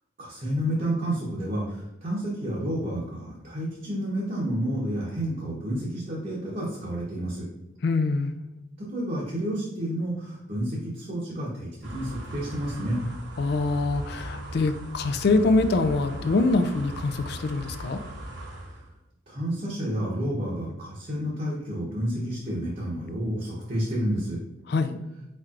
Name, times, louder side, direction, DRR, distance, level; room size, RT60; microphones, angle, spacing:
voice 1, 0.2-7.5 8.8-13.0 19.3-24.4, right 1 dB, 40° right, -6 dB, 1.0 m, -30 dB
voice 2, 7.8-8.3 13.4-18.0 24.7-25.0, left 3 dB, 55° left, 10 dB, 0.3 m, -24 dB
sound 1, 11.8-18.9, right 1 dB, 65° right, 1.0 m, -39 dB
4.5 x 4.3 x 2.4 m, 0.93 s
head